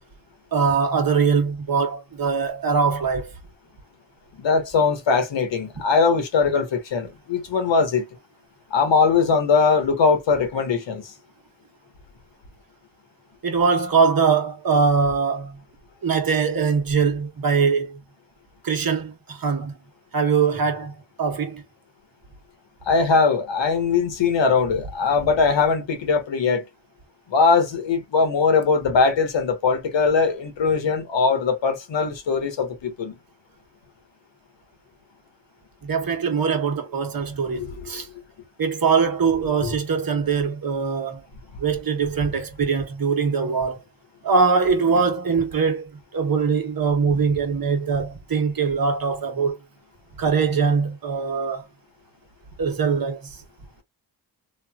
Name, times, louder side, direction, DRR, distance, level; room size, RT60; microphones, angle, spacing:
voice 1, 0.5-3.3 13.4-15.6 16.0-18.0 18.6-19.7 20.1-21.6 35.8-38.1 38.6-41.2 41.6-43.8 44.2-45.8 46.1-49.6 50.2-51.6 52.6-53.3, right 5 dB, 55° right, 1.0 m, -22 dB
voice 2, 4.4-8.1 8.7-11.0 22.9-26.6 27.3-33.1 37.5-38.0 39.6-39.7, left 5 dB, 80° left, 1.1 m, -21 dB
3.0 x 2.5 x 2.3 m
cardioid pair, 70°, 44 cm